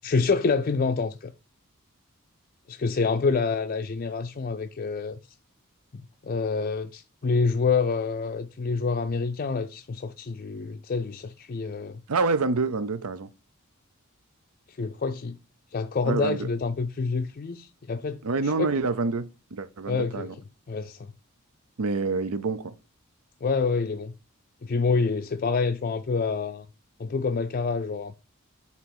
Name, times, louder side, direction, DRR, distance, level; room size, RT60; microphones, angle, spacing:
voice 1, 0.0-1.3 2.7-5.2 5.9-12.0 14.7-15.4 15.7-18.2 18.6-18.7 19.9-20.3 20.7-21.0 23.4-24.1 24.6-26.7 27.0-28.1, left 4 dB, 40° left, 0.4 m, -27 dB
voice 2, 12.1-13.3 16.1-16.5 18.2-20.4 21.8-22.7, right 3 dB, 80° right, 0.6 m, -27 dB
8.0 x 2.9 x 6.0 m
head